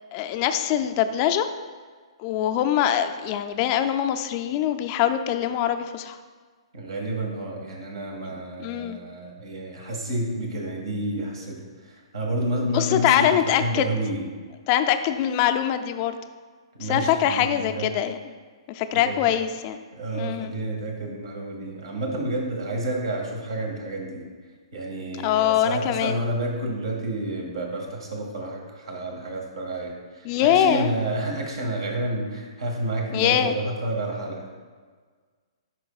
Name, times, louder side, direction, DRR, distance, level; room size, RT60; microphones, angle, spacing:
voice 1, 0.1-1.5 2.2-6.2 8.6-9.0 12.7-13.9 14.7-16.2 16.8-18.2 18.7-19.8 20.1-20.5 25.2-26.2 30.2-30.9 31.3-31.4 33.1-33.5, left 10 dB, 40° left, 8 dB, 0.4 m, -23 dB
voice 2, 6.7-14.2 16.7-17.9 18.9-19.2 19.9-24.2 24.7-34.5, right 1 dB, 70° right, 0 dB, 1.8 m, -30 dB
11.5 x 4.4 x 2.4 m, 1.5 s
hypercardioid pair, 125°, 3 cm